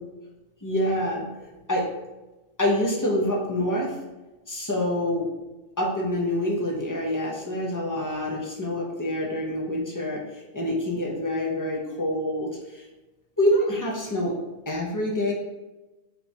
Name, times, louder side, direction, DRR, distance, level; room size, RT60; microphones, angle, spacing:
voice 1, 0.6-1.3 1.7-1.8 2.6-4.0 4.5-5.3 5.8-12.8 13.4-14.3 14.7-15.3, left 1 dB, 30° left, -3 dB, 0.3 m, -26 dB
3.7 x 3.0 x 4.0 m, 1.1 s
omnidirectional pair, 1.5 m